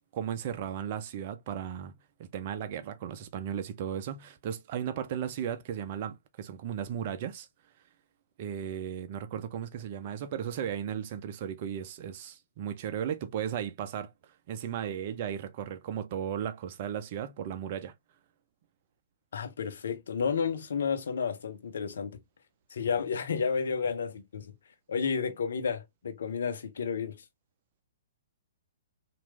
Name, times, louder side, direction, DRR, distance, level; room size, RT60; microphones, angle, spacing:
voice 1, 0.1-1.9 2.2-7.5 8.4-14.1 14.5-17.9, right 9 dB, 45° right, 0.6 m, -35 dB
voice 2, 19.3-22.2 22.7-24.5 24.9-27.1, left 6 dB, 70° left, 0.9 m, -31 dB
3.0 x 2.6 x 3.2 m
hypercardioid pair, 125°, 0 cm